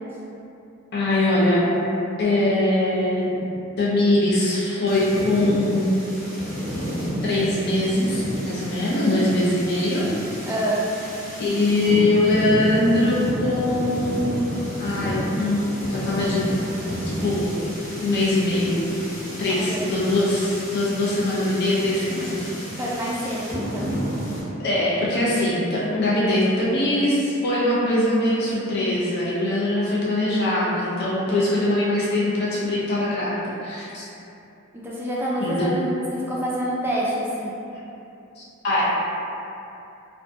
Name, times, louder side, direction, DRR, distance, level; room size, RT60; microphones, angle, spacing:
voice 1, 0.9-1.7 2.2-5.9 7.2-10.1 11.4-14.5 14.8-16.6 17.2-17.5 18.0-18.8 19.4-22.5 24.6-34.1 35.4-35.7 38.4-38.9, left 1 dB, 50° left, -7 dB, 0.5 m, -22 dB
sound 1, 4.9-24.4, equal, 15° left, 0.8 m, -31 dB
voice 2, 10.5-10.8 19.5-19.8 22.8-23.9 31.3-31.7 34.7-35.9 36.3-37.5, right 1 dB, 10° right, -6 dB, 0.3 m, -27 dB
2.6 x 2.2 x 2.5 m, 2.8 s
head